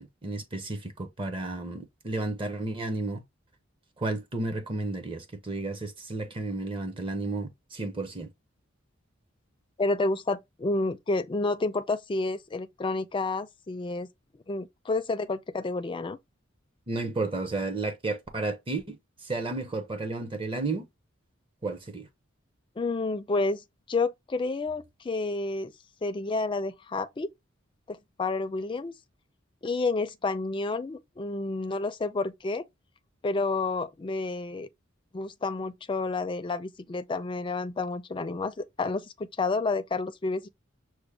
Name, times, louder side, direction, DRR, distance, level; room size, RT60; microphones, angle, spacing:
voice 1, 0.0-3.2 4.0-8.3 16.9-20.9 21.6-22.1, right 2 dB, 25° right, 0.7 m, -32 dB
voice 2, 9.8-14.1 14.5-16.2 22.8-25.7 26.0-27.3 27.9-28.9 29.6-32.6 33.2-34.7 35.1-40.5, left 3 dB, 25° left, 0.4 m, -30 dB
6.0 x 2.1 x 3.3 m
head